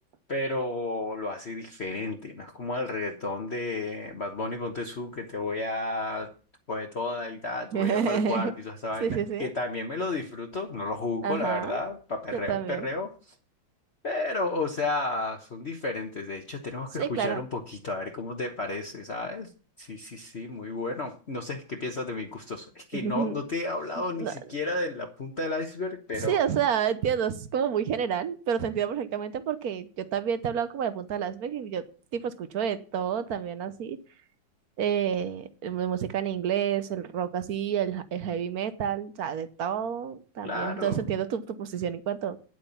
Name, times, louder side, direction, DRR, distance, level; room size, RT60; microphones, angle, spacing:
voice 1, 0.3-6.3 6.7-13.3 14.0-19.5 19.8-26.4 40.4-41.0, left 2 dB, 40° left, 3 dB, 1.2 m, -32 dB
voice 2, 7.7-8.5 9.0-9.5 11.2-11.8 12.3-12.9 17.0-17.4 22.9-23.4 24.2-24.3 26.1-31.8 32.1-34.0 34.8-42.5, right 8 dB, 55° right, 13 dB, 1.3 m, -29 dB
10.5 x 8.0 x 7.0 m, 0.39 s
omnidirectional pair, 2.1 m